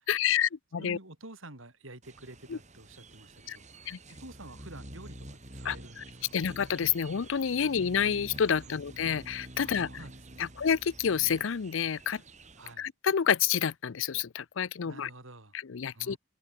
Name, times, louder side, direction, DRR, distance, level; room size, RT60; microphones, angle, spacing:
voice 1, 0.1-1.0 2.5-2.6 3.5-3.6 3.9-4.0 5.6-6.0 6.3-9.9 10.4-12.2 12.8-15.1 15.7-16.2, left 7 dB, 75° left, 0.5 m, -29 dB
voice 2, 0.8-6.5 7.6-7.7 8.6-9.0 9.6-10.5 12.6-12.9 14.8-15.6 15.9-16.2, right 2 dB, 85° right, 5.7 m, -50 dB
sound 1, 2.0-12.7, right 1 dB, 35° right, 6.5 m, -48 dB
head